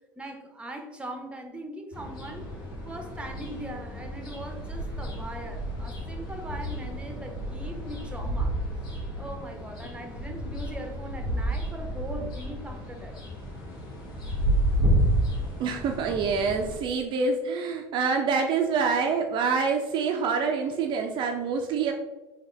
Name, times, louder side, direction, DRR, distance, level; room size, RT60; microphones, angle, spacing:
voice 1, 0.2-2.5 2.8-8.6 9.2-13.1, right 1 dB, 10° right, 4 dB, 0.7 m, -40 dB
sound 1, 1.9-16.8, equal, 80° left, 1.4 m, -31 dB
voice 2, 15.6-21.9, right 5 dB, 45° right, 3 dB, 0.4 m, -26 dB
3.8 x 2.8 x 3.1 m, 1.1 s
figure-of-eight pair, 65°, 11 cm